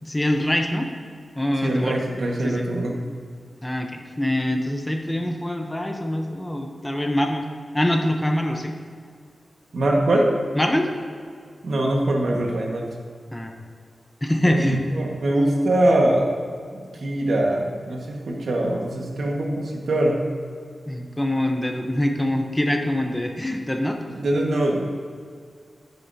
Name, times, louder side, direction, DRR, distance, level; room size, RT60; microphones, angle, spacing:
voice 1, 0.0-0.9 1.4-2.0 2.4-2.6 3.6-7.5 7.7-8.7 10.5-10.9 13.3-13.5 14.2-14.8 20.9-24.0, left 1 dB, 10° left, 3 dB, 0.8 m, -24 dB
voice 2, 1.6-2.9 9.7-10.3 11.6-12.9 14.5-16.3 16.9-20.2 24.1-24.8, right 1 dB, 85° right, -1 dB, 1.6 m, -22 dB
11.0 x 10.5 x 2.8 m, 2.1 s
wide cardioid pair, 140°, 0 cm